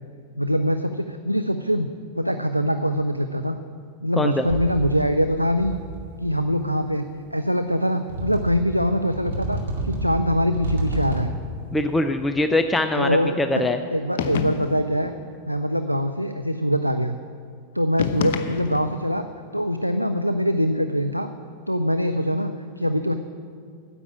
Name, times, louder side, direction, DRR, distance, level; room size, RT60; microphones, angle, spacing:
voice 1, 0.4-1.9 2.2-3.6 4.0-5.7 6.2-7.0 7.3-9.6 9.8-11.3 12.9-13.6 13.9-15.1 15.5-17.2 17.7-19.2 19.5-21.3 21.7-22.5 22.8-23.1, equal, 90° right, 8 dB, 0.4 m, -23 dB
voice 2, 4.2-4.5 11.7-13.8, left 2 dB, 10° left, 7 dB, 0.5 m, -22 dB
sound 1, 4.4-5.2 5.5-6.2 7.1-7.2 8.1-8.8 9.1-11.5, right 2 dB, 60° right, 2.3 m, -30 dB
sound 2, 14.2-14.9 18.0-19.0, left 7 dB, 55° left, 0.8 m, -28 dB
10.0 x 8.4 x 8.8 m, 2.4 s
figure-of-eight pair, 90°, 0 cm